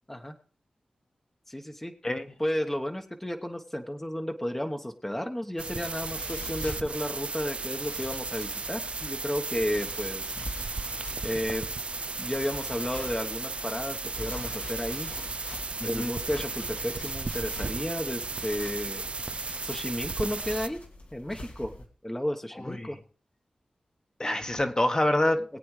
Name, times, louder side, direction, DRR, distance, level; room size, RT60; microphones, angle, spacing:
voice 1, 1.5-1.9 2.4-10.3 11.2-11.7 12.2-15.1 15.8-19.0 19.6-20.8 21.1-21.7 22.0-23.0, equal, 10° left, 4 dB, 1.1 m, -32 dB
sound 1, 5.6-20.7, right 3 dB, 50° right, 0.4 m, -35 dB
sound 2, 6.0-21.8, left 1 dB, 80° left, 2.6 m, -44 dB
voice 2, 15.8-16.1 22.6-22.9 24.2-25.4, left 1 dB, 30° left, 5 dB, 1.3 m, -26 dB
21.5 x 8.6 x 3.3 m, 0.42 s
cardioid pair, 60°, 3 cm